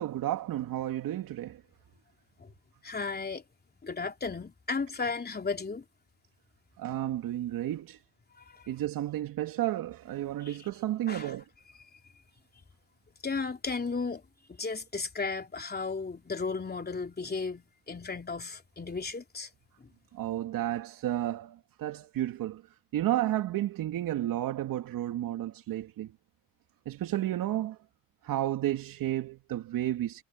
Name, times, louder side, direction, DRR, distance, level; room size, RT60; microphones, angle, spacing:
voice 1, 0.0-1.6 6.8-8.0 8.7-11.4 20.1-22.6 22.9-26.1 26.9-27.8 28.2-30.2, right 13 dB, 65° right, 2.6 m, -32 dB
voice 2, 2.8-3.4 3.8-5.8 10.4-10.6 11.1-11.3 13.2-14.2 14.5-19.5, left 4 dB, 25° left, 3.3 m, -34 dB
supercardioid pair, 60°, 36 cm